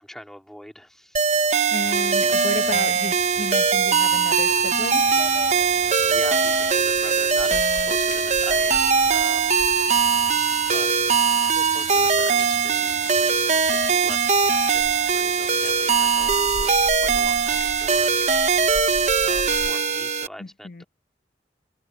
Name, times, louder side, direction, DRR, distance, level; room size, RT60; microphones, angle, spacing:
voice 1, 0.0-1.4 5.9-9.6 10.7-10.9 11.4-18.2 19.2-20.9, equal, 5° left, 2.3 m, -42 dB
sound 1, 1.2-20.3, right 5 dB, 40° right, 1.0 m, -21 dB
voice 2, 1.7-5.1 20.4-20.8, left 3 dB, 50° left, 1.0 m, -32 dB
sound 2, 1.8-19.7, left 7 dB, 80° left, 1.1 m, -38 dB
sound 3, 4.2-13.8, equal, 20° right, 3.8 m, -46 dB
head